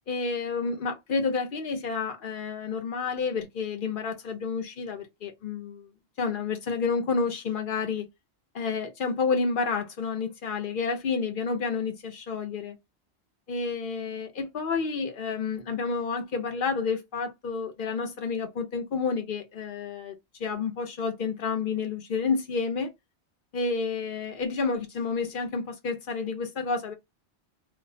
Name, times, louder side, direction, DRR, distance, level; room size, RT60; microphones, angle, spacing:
voice 1, 0.1-5.9 6.2-8.1 8.5-12.8 13.5-22.9 23.5-26.9, left 4 dB, 55° left, 0.7 m, -30 dB
2.4 x 2.0 x 2.6 m
omnidirectional pair, 1.1 m